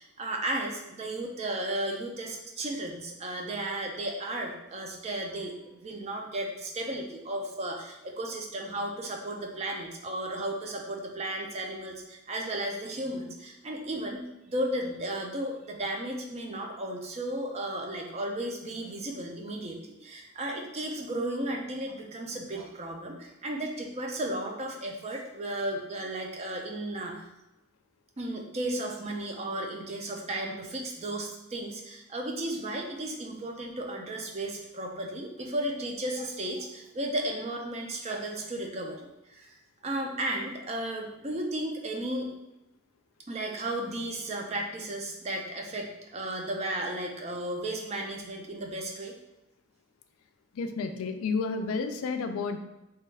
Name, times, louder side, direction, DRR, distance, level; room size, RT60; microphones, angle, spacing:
voice 1, 0.0-27.3 28.2-39.6 39.8-42.3 43.3-49.1, right 1 dB, 30° right, 1 dB, 0.4 m, -34 dB
voice 2, 50.5-52.6, left 4 dB, 75° left, 7 dB, 0.3 m, -31 dB
3.4 x 2.3 x 3.2 m, 0.94 s
head